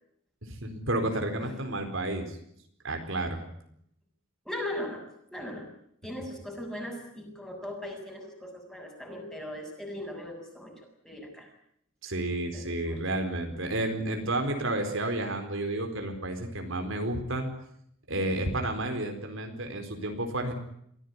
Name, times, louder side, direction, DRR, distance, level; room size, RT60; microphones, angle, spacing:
voice 1, 0.4-2.4 2.8-3.4 12.0-17.5 18.1-20.5, right 1 dB, 65° right, 5 dB, 4.5 m, -31 dB
voice 2, 4.4-5.7 6.0-10.7 11.0-11.5 12.5-13.0, left 1 dB, 5° left, 1 dB, 6.8 m, -39 dB
24.0 x 17.0 x 9.7 m, 0.71 s
head